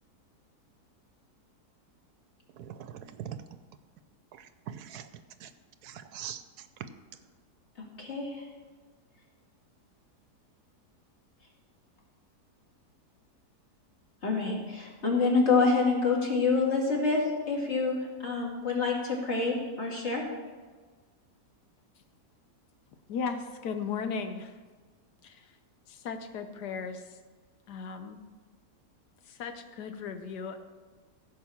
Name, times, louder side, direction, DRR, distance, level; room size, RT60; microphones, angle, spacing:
voice 1, 2.6-3.4 4.3-5.1 5.4-5.5 5.8-6.4 6.8-6.9, right 9 dB, 75° right, 11 dB, 1.1 m, -41 dB
voice 2, 8.0-8.4 14.2-17.2 17.5-20.2, left 4 dB, 40° left, -1 dB, 2.5 m, -27 dB
voice 3, 23.1-24.5 25.2-25.4 25.9-27.0 27.7-28.2 29.3-30.6, left 5 dB, 75° left, 8 dB, 1.4 m, -36 dB
15.5 x 5.5 x 7.1 m, 1.4 s
omnidirectional pair, 1.8 m